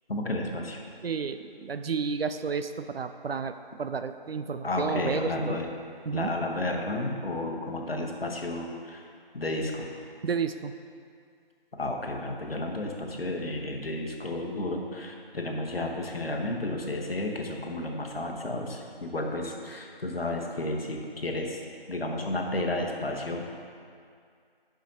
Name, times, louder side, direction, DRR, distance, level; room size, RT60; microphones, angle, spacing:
voice 1, 0.1-0.8 4.6-5.7 6.1-9.1 9.3-9.9 11.7-21.6 21.9-23.4, left 2 dB, 75° left, 2 dB, 1.0 m, -32 dB
voice 2, 1.0-5.6 6.1-6.3 10.2-10.7, right 5 dB, 80° right, 10 dB, 0.5 m, -31 dB
5.2 x 5.1 x 5.2 m, 2.3 s
figure-of-eight pair, 165°, 30 cm